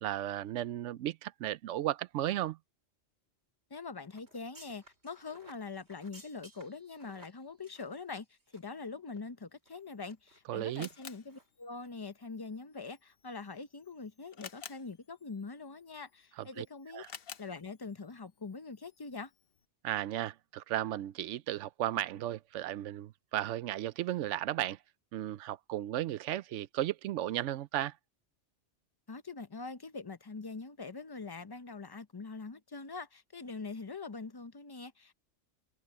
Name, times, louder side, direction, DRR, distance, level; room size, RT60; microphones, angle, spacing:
voice 1, 0.0-2.6 10.5-10.9 16.4-16.7 16.9-17.1 19.8-24.8 25.1-27.9, right 13 dB, 90° right, 0.9 m, -35 dB
voice 2, 3.7-8.3 8.5-17.0 17.4-19.3 29.1-35.1, left 4 dB, 25° left, 0.7 m, -43 dB
sound 1, 4.1-8.8 9.1-9.2 9.7-10.4 10.8-11.0 11.3-11.5 11.8-11.9, right 1 dB, 65° right, 7.7 m, -58 dB
Camera, 9.8-19.7, left 7 dB, 55° left, 1.0 m, -54 dB
omnidirectional pair, 1.2 m